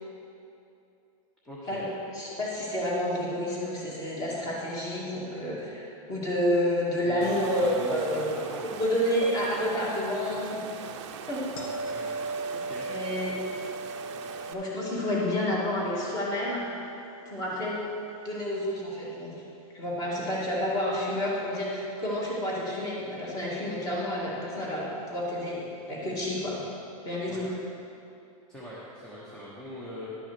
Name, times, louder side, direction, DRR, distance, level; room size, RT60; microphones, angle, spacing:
voice 1, 1.4-1.9 7.0-8.8 11.9-12.1 12.5-13.2 27.2-27.5 28.5-30.1, equal, 5° left, -8 dB, 1.0 m, -42 dB
voice 2, 2.1-8.4 8.8-10.6 11.3-11.4 12.9-13.4 14.5-16.6 17.3-17.8 18.2-19.3 19.7-26.6 27.0-27.5, left 1 dB, 20° left, -5 dB, 2.1 m, -29 dB
Water, 7.2-14.5, right 8 dB, 50° right, 0.7 m, -42 dB
sound 1, 11.6-18.6 23.8-24.0, right 2 dB, 70° left, 1.7 m, -39 dB
11.5 x 5.8 x 6.1 m, 2.7 s
supercardioid pair, 165°, 19 cm